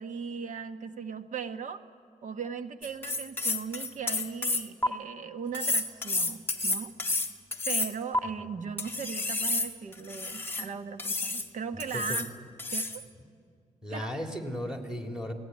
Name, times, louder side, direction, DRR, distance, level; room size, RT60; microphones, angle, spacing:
voice 1, 0.0-1.8 2.2-7.2 7.6-12.3 12.7-13.0 13.9-14.1, right 6 dB, 60° right, 8 dB, 1.4 m, -38 dB
sound 1, 2.8-4.9 5.5-8.2 8.8-10.7 11.0-11.5 11.8-12.3 12.6-13.0, left 2 dB, 15° left, 1.5 m, -30 dB
voice 2, 11.7-12.2 13.8-15.3, equal, 5° right, 3 dB, 3.2 m, -36 dB
28.0 x 17.5 x 9.5 m, 2.2 s
cardioid pair, 95°, 14 cm